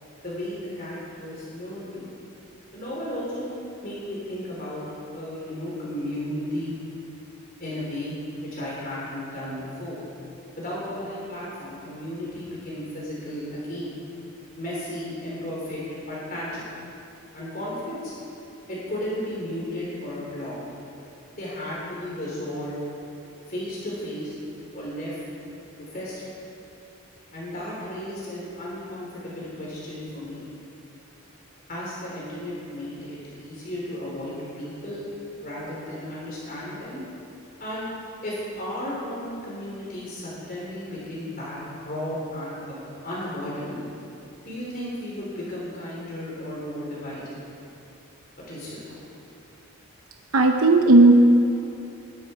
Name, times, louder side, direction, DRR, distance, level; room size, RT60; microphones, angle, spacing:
voice 1, 0.2-2.1 2.7-3.5 3.8-4.8 5.1-6.8 7.6-8.1 8.5-10.0 10.6-13.9 14.6-16.8 17.3-18.1 18.7-20.6 21.4-22.8 23.5-24.4 24.7-25.2 25.8-26.3 27.3-30.5 31.7-35.1 35.4-37.0 37.6-37.9 38.2-43.8 44.4-47.2 48.5-49.0, left 1 dB, 40° left, -6 dB, 3.7 m, -34 dB
voice 2, 50.3-51.2, right 2 dB, 90° right, 3 dB, 0.9 m, -14 dB
21.5 x 12.0 x 4.5 m, 2.8 s
head